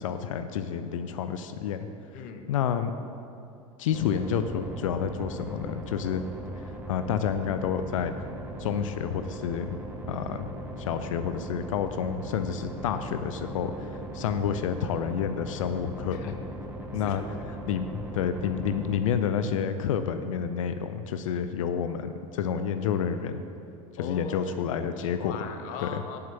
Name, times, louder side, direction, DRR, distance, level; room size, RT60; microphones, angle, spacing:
voice 1, 0.0-1.9 2.5-2.9 3.8-6.2 6.6-8.1 8.6-9.8 10.1-10.5 10.8-16.4 16.9-17.2 17.7-23.4 24.0-25.5 25.8-26.0, left 8 dB, 60° left, 10 dB, 0.5 m, -29 dB
voice 2, 2.1-2.5 16.1-16.3 17.0-17.4 24.0-26.2, left 6 dB, 45° left, 6 dB, 0.8 m, -40 dB
sound 1, 3.9-18.9, right 1 dB, 10° right, 1.1 m, -39 dB
7.5 x 5.7 x 6.8 m, 2.6 s
figure-of-eight pair, 75°, 19 cm